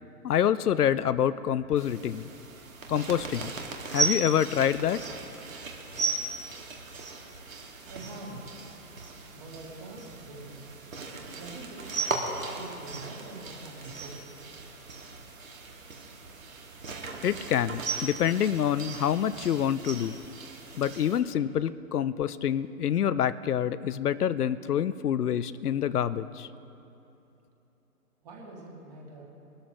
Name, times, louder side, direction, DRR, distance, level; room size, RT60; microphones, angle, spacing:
voice 1, 0.2-2.3 2.9-3.5 3.9-5.0 17.2-20.2 20.8-26.5, left 9 dB, 75° left, 15 dB, 0.6 m, -27 dB
sound 1, 1.8-21.2, right 3 dB, 60° right, 2.2 m, -37 dB
voice 2, 7.9-8.6 9.3-10.5 11.3-11.8 12.5-14.2 28.2-29.3, right 2 dB, 25° right, -3 dB, 2.6 m, -44 dB
22.5 x 13.0 x 3.1 m, 2.9 s
hypercardioid pair, 160°, 46 cm